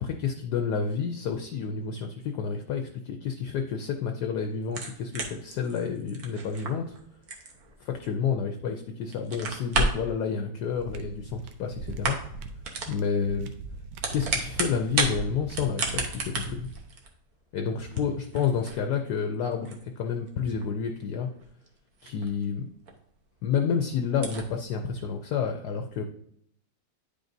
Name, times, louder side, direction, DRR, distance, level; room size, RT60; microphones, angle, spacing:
voice 1, 0.0-6.9 7.8-12.2 12.9-13.5 14.1-16.7 17.5-21.3 22.0-22.7 23.4-26.0, left 6 dB, 70° left, 4 dB, 1.0 m, -29 dB
sound 1, 4.6-8.7 9.0-10.1 11.2-11.6 11.9-12.4 12.6-13.0 13.8-15.2 15.5-22.5 22.9-23.0 23.4-23.5 23.7-23.8 24.1-24.5, right 3 dB, 55° right, 1.4 m, -32 dB
sound 2, 10.7-16.9, right 4 dB, 85° right, 1.5 m, -41 dB
10.0 x 5.1 x 2.6 m, 0.69 s
omnidirectional pair, 2.2 m